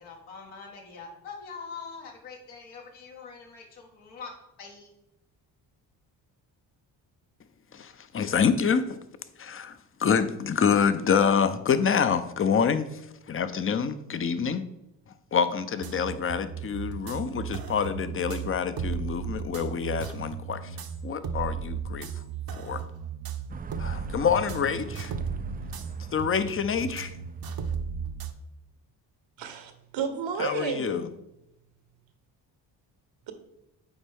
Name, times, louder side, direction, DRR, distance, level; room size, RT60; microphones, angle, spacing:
voice 1, 0.0-4.9, left 5 dB, 75° left, 0 dB, 1.6 m, -43 dB
voice 2, 7.7-9.0 9.4-13.0 13.3-14.7 15.3-20.8 21.0-22.1 22.6-22.8 23.8-25.1 26.1-27.2 30.4-31.1, left 6 dB, 30° left, 12 dB, 0.6 m, -26 dB
sound 1, 15.8-28.3, right 6 dB, 50° right, 0.8 m, -35 dB
sound 2, 23.5-27.8, right 6 dB, 20° right, 0.3 m, -42 dB
voice 3, 29.4-31.0, right 6 dB, 65° right, 7 dB, 1.1 m, -32 dB
7.1 x 4.4 x 3.5 m, 0.89 s
supercardioid pair, 50°, 48 cm